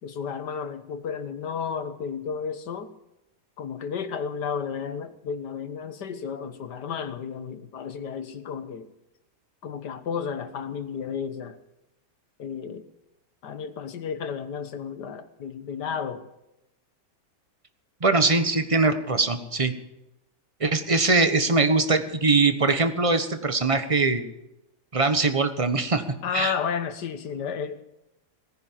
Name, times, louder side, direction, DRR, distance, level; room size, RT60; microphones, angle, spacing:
voice 1, 0.0-2.9 3.6-8.9 9.6-11.6 12.4-12.8 13.4-16.3 26.2-27.8, left 7 dB, 75° left, 1.8 m, -32 dB
voice 2, 18.0-19.7 20.6-24.2 24.9-26.0 26.3-26.5, right 3 dB, 20° right, 1.2 m, -22 dB
18.0 x 10.5 x 7.4 m
omnidirectional pair, 1.8 m